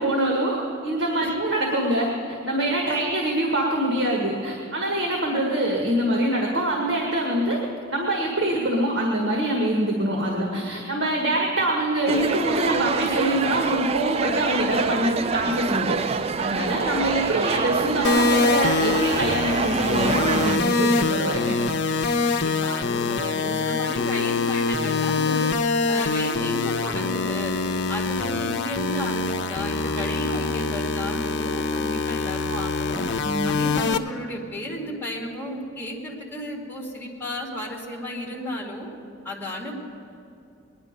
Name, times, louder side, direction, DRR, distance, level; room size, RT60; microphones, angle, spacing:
voice 1, 0.0-7.6 7.9-21.6 30.3-30.4 32.5-32.6 33.2-33.6, right 1 dB, 75° right, -1 dB, 1.6 m, -24 dB
sound 1, 12.1-20.6, right 5 dB, 35° right, 0.3 m, -26 dB
sound 2, 18.0-34.0, left 3 dB, 65° left, 0.6 m, -24 dB
voice 2, 22.2-25.4 25.9-27.6 27.9-33.1 33.4-38.9 39.2-39.7, left 1 dB, 10° left, -1 dB, 2.2 m, -33 dB
20.0 x 10.5 x 5.2 m, 2.6 s
head